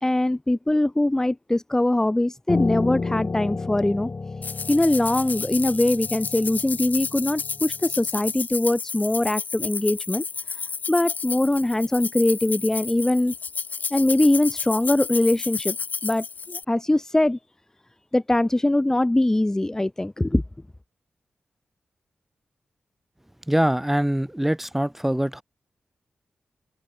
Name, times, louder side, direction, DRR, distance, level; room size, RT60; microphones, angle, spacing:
voice 1, 0.0-4.1 4.7-10.2 10.5-10.6 10.9-13.3 13.9-15.8 16.0-17.4 18.1-20.4, left 1 dB, 15° left, 1.7 m, -22 dB
Piano, 2.5-7.8, left 3 dB, 45° left, 5.8 m, -31 dB
sound 1, 4.4-16.6, left 5 dB, 65° left, 5.2 m, -31 dB
voice 2, 23.5-25.4, right 1 dB, 5° right, 2.1 m, -23 dB
cardioid pair, 65°, 3 cm